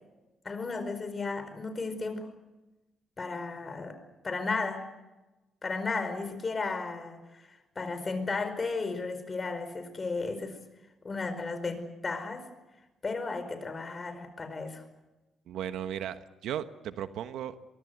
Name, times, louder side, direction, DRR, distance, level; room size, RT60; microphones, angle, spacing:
voice 1, 0.4-2.3 3.2-4.0 4.2-4.9 5.6-10.6 11.0-12.5 13.0-14.8, left 3 dB, 30° left, 9 dB, 4.8 m, -34 dB
voice 2, 15.5-17.6, right 10 dB, 80° right, 10 dB, 1.2 m, -36 dB
23.0 x 23.0 x 8.1 m, 1.1 s
cardioid pair, 90°, 0 cm